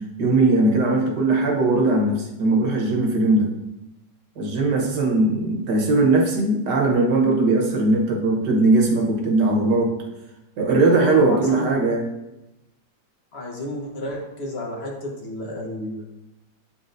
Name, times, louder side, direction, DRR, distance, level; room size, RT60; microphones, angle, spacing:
voice 1, 0.2-3.5 4.4-9.9 10.6-12.1, right 2 dB, 70° right, 0 dB, 1.6 m, -19 dB
voice 2, 10.9-11.8 13.3-16.0, left 1 dB, 45° left, -1 dB, 1.0 m, -31 dB
8.5 x 4.3 x 2.6 m, 0.93 s
omnidirectional pair, 2.0 m